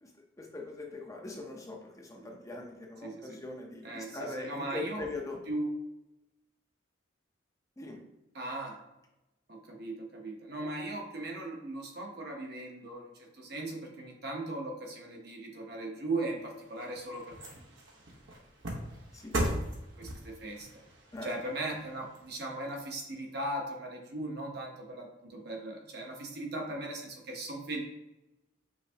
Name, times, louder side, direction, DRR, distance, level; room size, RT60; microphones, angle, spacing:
voice 1, 0.4-5.4 7.8-8.0 19.1-19.3 21.1-21.3, left 2 dB, 15° left, 0 dB, 0.6 m, -41 dB
voice 2, 3.8-5.0 5.5-5.7 8.3-8.8 9.5-17.4 20.0-20.7 21.2-27.8, right 2 dB, 55° right, 1 dB, 0.9 m, -38 dB
sound 1, 16.4-22.8 23.3-23.4, right 1 dB, 85° right, 1.0 m, -39 dB
5.7 x 3.3 x 2.8 m, 0.94 s
head